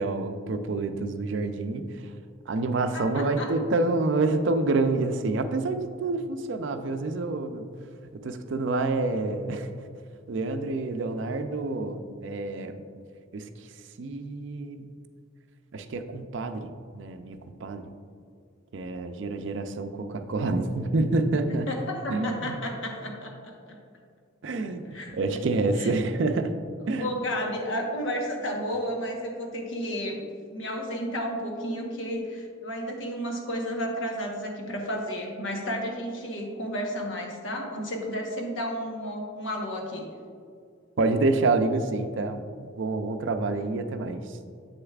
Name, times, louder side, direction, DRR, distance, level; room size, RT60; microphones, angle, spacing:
voice 1, 0.0-2.1 2.5-7.7 8.1-9.7 10.3-12.8 13.3-13.7 14.0-14.9 15.7-17.9 18.7-21.7 22.1-22.6 24.4-26.5 26.9-27.1 41.0-42.4 42.8-44.4, right 3 dB, 65° right, 8 dB, 0.4 m, -28 dB
voice 2, 2.9-3.5 21.7-23.3 23.7-23.8 24.8-25.4 25.8-25.9 27.0-30.2 30.5-40.1, equal, 70° left, 0 dB, 1.1 m, -32 dB
7.9 x 6.5 x 2.4 m, 2.2 s
head